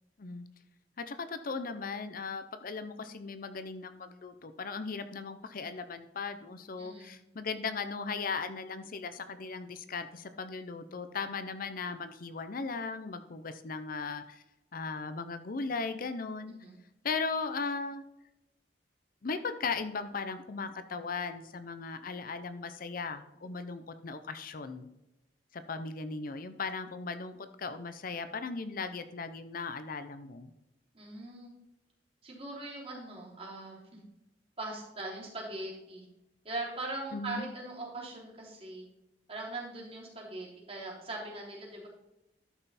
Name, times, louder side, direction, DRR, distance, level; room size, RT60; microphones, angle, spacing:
voice 1, 1.0-14.4 14.7-16.5 17.0-18.0 19.2-24.9 25.5-30.5 37.1-37.4, left 4 dB, 55° left, 10 dB, 0.7 m, -37 dB
voice 2, 6.8-7.2 16.5-16.8 30.9-31.5 32.2-34.0 34.6-36.1 36.4-38.8 39.3-41.9, right 2 dB, 35° right, -4 dB, 3.5 m, -41 dB
12.5 x 5.6 x 4.2 m, 0.93 s
head